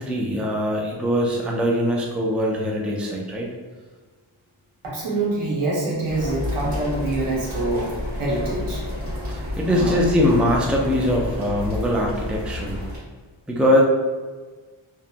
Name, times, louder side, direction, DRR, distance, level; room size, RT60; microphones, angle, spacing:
voice 1, 0.0-3.5 9.3-12.8 13.5-13.8, equal, 5° right, -1 dB, 0.3 m, -22 dB
voice 2, 4.8-7.9 8.2-8.8 9.6-10.0, right 2 dB, 85° right, -4 dB, 0.9 m, -25 dB
sound 1, 6.1-13.0, left 1 dB, 55° right, 1.5 m, -30 dB
2.9 x 2.2 x 2.4 m, 1.4 s
wide cardioid pair, 50°, 49 cm